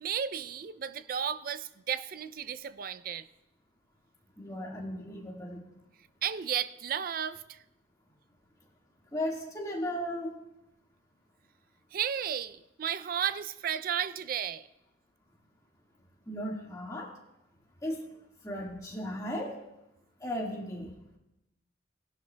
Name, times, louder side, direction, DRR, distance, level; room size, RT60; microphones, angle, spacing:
voice 1, 0.0-3.3 6.2-7.6 11.9-14.7, right 8 dB, 50° right, 0.4 m, -33 dB
voice 2, 4.4-5.6 9.1-10.4 16.2-17.2 17.8-18.1 18.4-19.6 20.2-21.0, equal, 15° left, 1.7 m, -36 dB
17.5 x 11.5 x 2.2 m
head